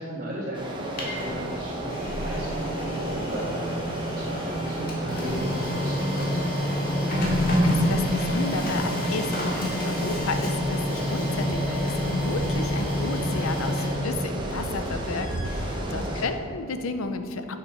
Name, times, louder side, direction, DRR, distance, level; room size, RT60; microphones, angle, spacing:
voice 1, 0.0-3.7 4.1-6.4 15.8-16.3, right 1 dB, 40° right, -10 dB, 1.7 m, -35 dB
sound 1, 0.5-16.3, right 1 dB, 20° right, 1.2 m, -34 dB
Printer, 0.7-16.5, left 1 dB, 45° left, 2.0 m, -28 dB
voice 2, 7.3-17.6, left 3 dB, 85° left, 8 dB, 0.7 m, -32 dB
sound 2, 10.0-16.0, right 1 dB, 75° right, 0.8 m, -38 dB
8.3 x 6.7 x 5.8 m, 2.4 s
head